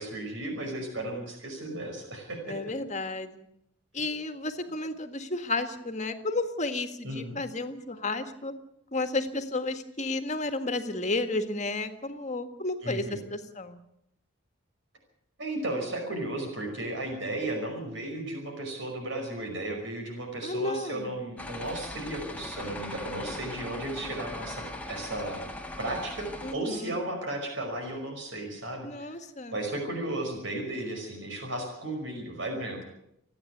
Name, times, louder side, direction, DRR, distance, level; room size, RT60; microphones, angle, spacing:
voice 1, 0.0-2.6 7.0-7.4 12.8-13.2 15.4-25.5 25.8-29.2 29.5-32.8, right 1 dB, 65° right, 2 dB, 5.3 m, -34 dB
voice 2, 2.5-3.5 3.9-8.5 8.9-13.8 20.4-21.2 26.4-26.9 28.8-29.6, left 2 dB, 35° left, 8 dB, 1.7 m, -32 dB
sound 1, 21.4-26.5, left 1 dB, 5° left, 1.6 m, -40 dB
29.0 x 9.8 x 9.3 m, 0.78 s
head